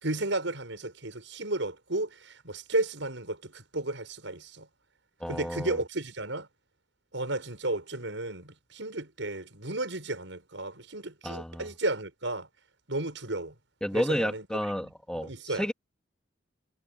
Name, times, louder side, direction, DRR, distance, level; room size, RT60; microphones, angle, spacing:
voice 1, 0.0-4.7 5.3-6.5 7.1-12.5 12.9-13.5 13.9-14.4 15.1-15.7, right 2 dB, 80° right, 6.3 m, -33 dB
voice 2, 5.2-5.8 11.2-11.7 13.8-15.7, equal, 5° left, 2.8 m, -31 dB
head